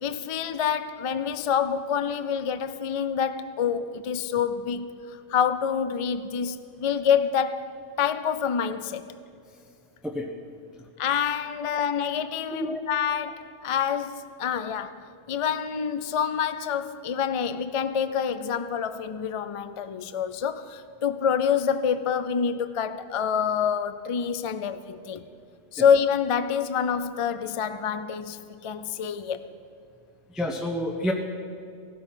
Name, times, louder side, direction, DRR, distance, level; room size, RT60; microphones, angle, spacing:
voice 1, 0.0-9.1 11.0-25.3 25.7-29.4, left 7 dB, 50° left, 0.4 m, -27 dB
voice 2, 30.3-31.1, equal, ahead, 0.9 m, -29 dB
17.0 x 12.5 x 5.7 m
omnidirectional pair, 1.3 m